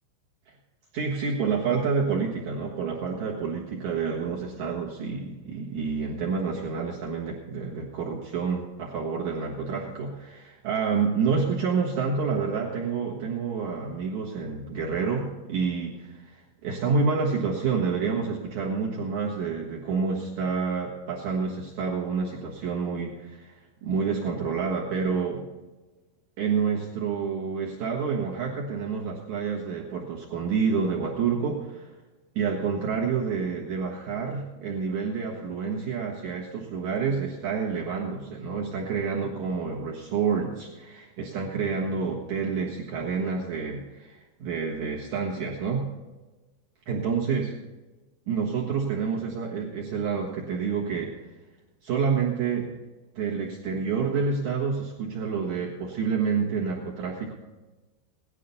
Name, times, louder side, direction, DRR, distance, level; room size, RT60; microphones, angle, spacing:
voice 1, 0.9-25.4 26.4-31.9 32.3-45.9 46.9-47.5 48.3-51.1 51.8-52.7 53.1-57.3, right 5 dB, 85° right, -3 dB, 1.6 m, -28 dB
18.0 x 11.5 x 4.1 m, 1.2 s
omnidirectional pair, 5.7 m